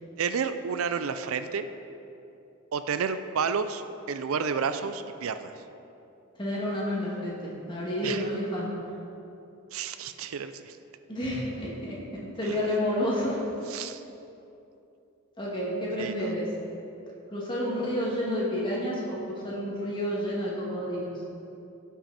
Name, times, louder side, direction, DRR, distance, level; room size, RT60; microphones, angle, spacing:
voice 1, 0.2-1.7 2.7-3.8 4.1-5.5 8.0-8.3 9.7-10.8 12.4-12.7 13.7-14.0 16.0-16.4, right 6 dB, 75° right, 10 dB, 0.4 m, -31 dB
voice 2, 6.4-8.7 11.1-12.0 12.4-13.4 15.4-16.4 17.3-21.1, equal, 20° left, -5 dB, 2.2 m, -30 dB
16.5 x 6.0 x 4.2 m, 2.8 s
head